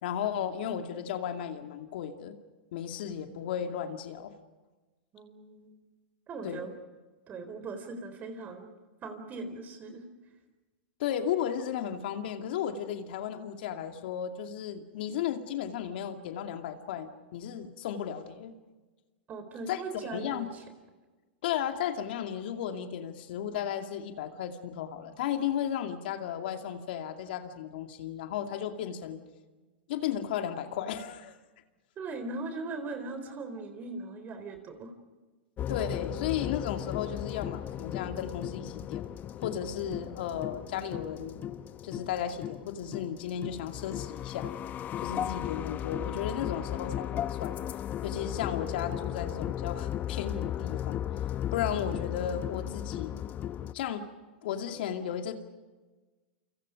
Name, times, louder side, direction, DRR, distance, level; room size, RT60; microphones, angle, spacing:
voice 1, 0.0-2.4 2.7-4.3 6.4-6.7 11.0-18.5 19.7-19.8 20.1-20.5 21.4-29.2 29.9-31.3 35.7-39.1 39.4-41.4 41.8-44.5 45.0-47.6 48.0-51.0 51.5-53.2 53.7-54.1 54.4-55.3, left 9 dB, 65° left, 5 dB, 2.3 m, -34 dB
voice 2, 3.0-3.4 5.1-5.7 6.3-6.7 7.3-8.7 9.0-10.0 19.3-20.6 32.0-34.9 39.8-39.9, right 3 dB, 30° right, 8 dB, 4.2 m, -40 dB
sound 1, 35.6-53.7, left 11 dB, 30° left, 0.9 m, -36 dB
29.0 x 26.0 x 5.1 m, 1.2 s
hypercardioid pair, 115°, 6 cm